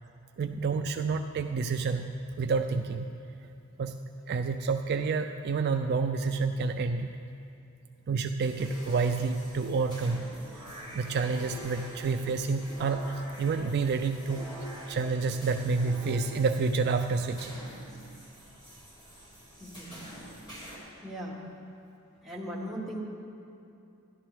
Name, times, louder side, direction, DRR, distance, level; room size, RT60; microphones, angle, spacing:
voice 1, 0.4-3.1 3.8-3.9 4.3-7.2 8.1-10.3 10.9-14.5 14.9-17.6, right 4 dB, 50° right, 7 dB, 0.3 m, -29 dB
sound 1, 8.4-20.8, equal, 20° left, 2.3 m, -46 dB
voice 2, 19.6-20.0 21.0-21.4 22.2-23.0, equal, ahead, -4 dB, 1.3 m, -38 dB
13.5 x 11.5 x 3.2 m, 2.6 s
head